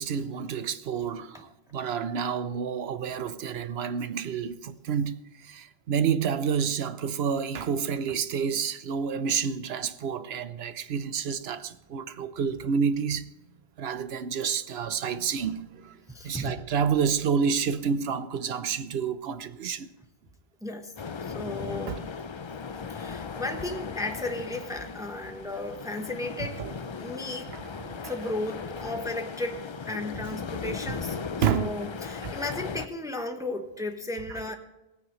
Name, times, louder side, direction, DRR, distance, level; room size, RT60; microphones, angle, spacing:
voice 1, 0.0-1.5 1.7-5.2 5.5-13.3 13.8-15.6 16.2-19.9 21.9-22.1 26.6-26.7 27.8-28.1 31.4-31.7, right 7 dB, 75° right, 1.0 m, -29 dB
voice 2, 16.1-16.6 20.6-20.9 21.2-22.0 22.9-26.6 27.0-27.5 28.0-29.6 29.8-31.2 31.5-34.6, left 2 dB, 5° right, 1.0 m, -34 dB
sound 1, 21.0-32.9, left 5 dB, 40° left, 0.4 m, -37 dB
17.5 x 9.5 x 3.1 m
omnidirectional pair, 1.1 m